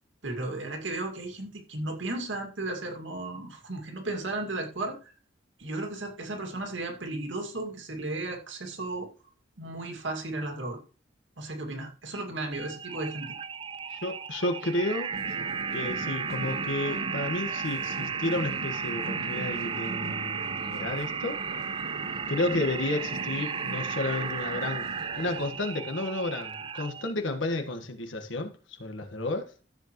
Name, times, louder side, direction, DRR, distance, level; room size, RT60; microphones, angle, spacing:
voice 1, 0.2-5.1 5.6-9.1 9.6-10.8 11.4-13.4, right 2 dB, 80° right, 2.3 m, -34 dB
sound 1, 12.5-27.1, right 6 dB, 25° right, 0.3 m, -34 dB
voice 2, 13.9-15.1 15.7-21.4 22.3-24.9 25.2-28.5 28.8-29.5, left 2 dB, 80° left, 1.5 m, -31 dB
sound 2, 15.1-25.5, right 1 dB, 55° right, 1.4 m, -40 dB
13.5 x 7.3 x 3.1 m
head